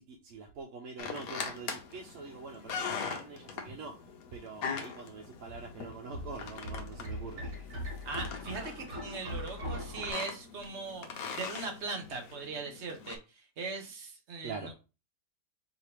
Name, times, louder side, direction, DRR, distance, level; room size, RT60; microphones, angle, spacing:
voice 1, 0.0-4.0 4.3-7.4 14.4-14.8, right 4 dB, 65° right, 3 dB, 0.8 m, -44 dB
sound 1, 1.0-13.2, left 6 dB, 65° left, 1.1 m, -42 dB
sound 2, 5.5-10.1, left 1 dB, 85° right, 2.7 m, -40 dB
voice 2, 8.0-14.7, right 4 dB, 45° right, 3 dB, 1.1 m, -40 dB
4.8 x 2.9 x 3.4 m, 0.31 s
omnidirectional pair, 1.8 m